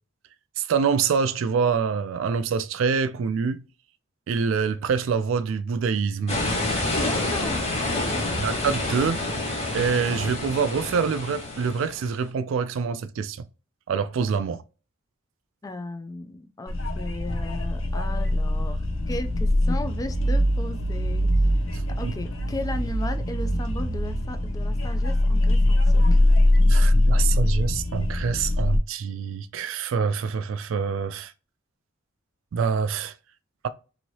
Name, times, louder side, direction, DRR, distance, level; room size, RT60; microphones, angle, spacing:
voice 1, 0.6-3.6 4.3-6.4 8.4-9.2 9.7-13.5 13.9-14.6 22.0-22.1 26.7-31.3 32.5-33.1, right 6 dB, 70° right, 0.3 m, -25 dB
sound 1, 6.3-12.2, left 2 dB, 35° left, 1.2 m, -28 dB
voice 2, 7.0-8.3 14.2-14.3 15.6-18.8 19.1-21.5 22.0-26.2, left 1 dB, 20° left, 0.3 m, -36 dB
sound 2, 16.7-28.8, left 1 dB, 85° left, 0.6 m, -22 dB
2.8 x 2.7 x 2.9 m
head